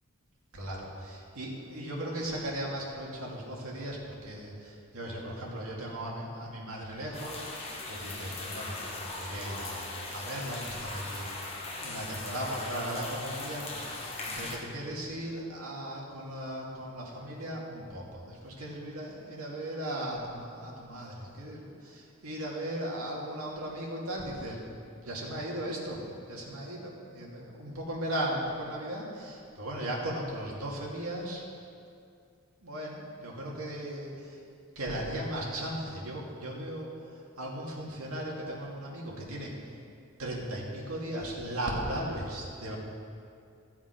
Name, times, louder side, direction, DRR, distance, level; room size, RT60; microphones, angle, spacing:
voice 1, 0.5-24.6 25.0-26.0 26.3-31.4 32.6-34.4 34.8-36.9 37.4-39.5 40.2-42.8, right 1 dB, 75° right, -3 dB, 2.3 m, -37 dB
sound 1, 7.1-14.6, left 2 dB, 25° left, 1.2 m, -39 dB
14.5 x 7.2 x 5.1 m, 2.4 s
head